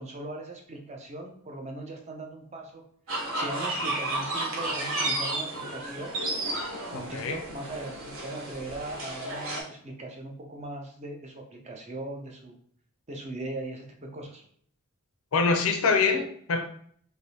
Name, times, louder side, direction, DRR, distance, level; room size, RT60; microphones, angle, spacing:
voice 1, 0.0-12.6 13.1-14.4, right 2 dB, 30° right, 2 dB, 0.5 m, -39 dB
sound 1, 3.1-9.6, right 2 dB, 60° right, 0.8 m, -32 dB
voice 2, 6.9-7.4 15.3-16.7, left 4 dB, 70° left, 6 dB, 0.5 m, -25 dB
3.3 x 2.6 x 2.7 m, 0.63 s
head